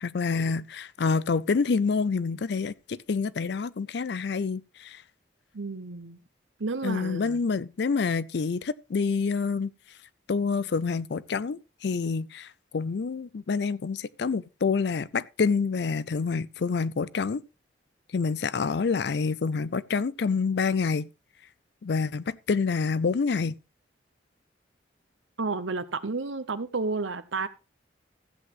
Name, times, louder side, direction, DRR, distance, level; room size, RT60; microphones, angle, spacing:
voice 1, 0.0-5.0 6.8-9.7 10.3-12.5 12.7-17.4 18.1-21.1 21.8-23.6, left 5 dB, 65° left, 0.4 m, -27 dB
voice 2, 5.5-6.2 6.6-7.4 25.4-27.5, right 3 dB, 85° right, 0.9 m, -31 dB
14.5 x 7.9 x 3.1 m
head